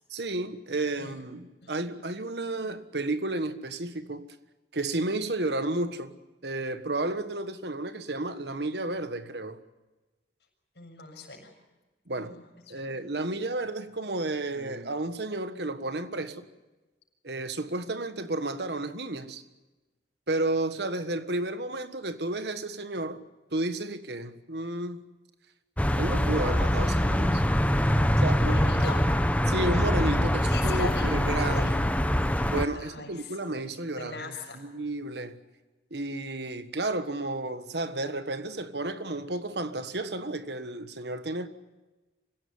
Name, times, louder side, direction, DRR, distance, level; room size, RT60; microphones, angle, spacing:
voice 1, 0.1-4.3 4.7-6.1 6.4-9.6 12.1-12.3 12.7-16.5 17.2-19.4 20.3-23.2 23.5-25.0 25.9-27.4 28.2-28.9 29.5-31.8 32.5-34.3 34.6-35.4 35.9-41.5, right 2 dB, 70° right, 1.4 m, -32 dB
voice 2, 10.7-11.5 12.2-13.1 28.3-29.0 30.5-31.8 32.7-33.4 33.9-34.6, left 3 dB, 75° left, 6.8 m, -40 dB
sound 1, 25.8-32.7, equal, 10° left, 1.0 m, -24 dB
25.5 x 17.0 x 9.7 m
head